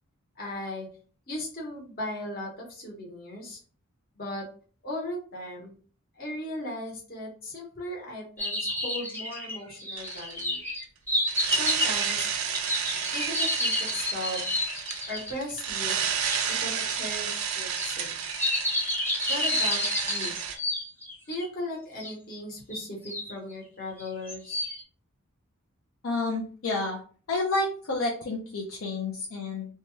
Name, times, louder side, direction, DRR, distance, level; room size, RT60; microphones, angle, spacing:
voice 1, 0.4-0.9 1.3-3.6 4.1-4.4 4.8-5.7 6.2-10.6 11.5-12.3 13.1-14.5 15.1-16.0 16.4-18.1 19.3-20.3 21.3-24.7, left 1 dB, 45° left, -2 dB, 1.1 m, -37 dB
sound 1, 8.4-15.4 16.3-16.4 17.7-21.5 22.0-22.1 22.7-23.3 24.0-24.8, left 1 dB, 10° left, 0.7 m, -30 dB
sound 2, 10.0-10.4 11.3-20.6, right 7 dB, 80° right, 0.5 m, -31 dB
voice 2, 26.0-27.0 27.3-29.7, left 2 dB, 70° left, -2 dB, 0.6 m, -29 dB
2.7 x 2.3 x 3.1 m, 0.41 s
head